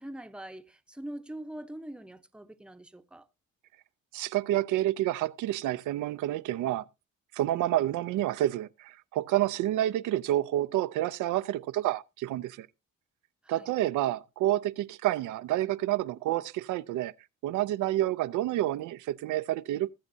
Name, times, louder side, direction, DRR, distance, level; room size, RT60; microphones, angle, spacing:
voice 1, 0.0-3.3 13.4-13.7, right 1 dB, 5° right, 0.7 m, -43 dB
voice 2, 4.1-6.8 7.3-12.7 13.5-17.1 17.4-19.9, right 14 dB, 80° right, 0.5 m, -29 dB
20.0 x 7.2 x 2.7 m
cardioid pair, 90°, 30 cm